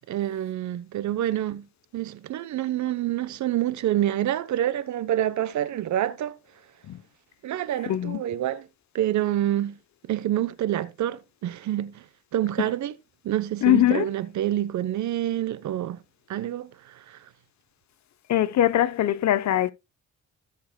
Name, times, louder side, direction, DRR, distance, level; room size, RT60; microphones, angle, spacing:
voice 1, 0.1-1.7 1.9-6.4 7.4-8.7 8.9-9.8 10.1-12.0 12.3-12.9 13.2-16.0 16.3-17.2, right 12 dB, 70° right, 0.9 m, -27 dB
voice 2, 7.9-8.2 13.6-14.1 18.3-19.7, left 13 dB, 65° left, 0.9 m, -21 dB
16.0 x 6.9 x 2.3 m
cardioid pair, 90°, 30 cm